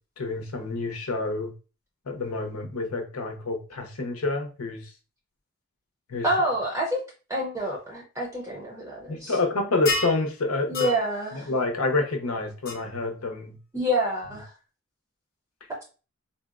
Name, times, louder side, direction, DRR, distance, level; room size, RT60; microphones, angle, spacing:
voice 1, 0.2-1.5 2.1-4.9 6.1-6.3 9.1-10.9 11.3-13.6, left 3 dB, 85° left, 4 dB, 0.7 m, -28 dB
voice 2, 6.2-7.0 7.3-9.3 10.7-11.5 13.7-14.5, equal, 15° right, -2 dB, 0.6 m, -27 dB
sound 1, 9.9-10.2 10.7-11.0 12.7-12.8, left 2 dB, 45° left, 0.7 m, -28 dB
3.9 x 2.0 x 2.4 m, 0.34 s
head